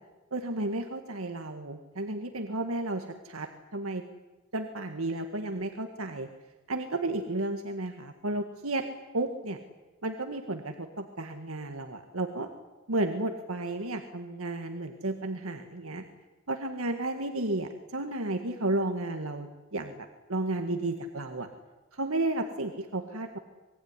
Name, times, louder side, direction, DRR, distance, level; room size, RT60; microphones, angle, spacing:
voice 1, 0.3-4.0 4.5-6.3 6.7-8.8 9.1-9.6 10.0-12.5 12.9-16.0 16.5-21.5 21.9-23.4, right 2 dB, 75° right, 6 dB, 1.9 m, -33 dB
26.0 x 21.0 x 9.9 m, 1.2 s
head